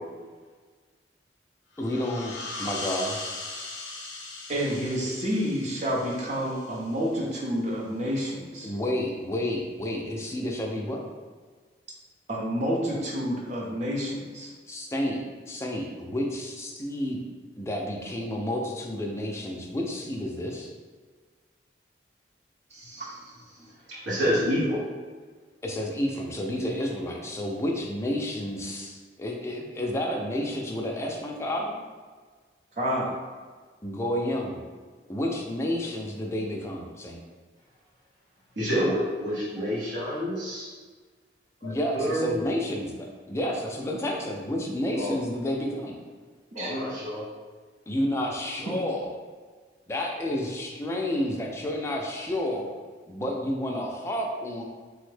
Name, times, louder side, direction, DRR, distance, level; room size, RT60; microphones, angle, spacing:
sound 1, 1.7-7.1, left 3 dB, 85° left, 0.5 m, -39 dB
voice 1, 1.8-2.3 2.6-3.2 8.6-11.0 14.7-17.2 17.6-20.7 25.6-31.8 33.8-34.6 35.1-37.2 41.6-45.9 47.9-49.1 49.9-52.7 53.1-54.6, left 1 dB, 15° left, 0 dB, 0.3 m, -30 dB
voice 2, 4.5-8.7 12.3-14.5 22.7-23.7 32.8-33.1 46.5-46.7, equal, 40° right, -3 dB, 0.6 m, -29 dB
voice 3, 23.9-24.9 38.6-40.7 41.6-42.4 44.9-45.2 46.5-47.2, equal, 80° right, -9 dB, 0.8 m, -28 dB
3.4 x 2.0 x 3.2 m, 1.5 s
head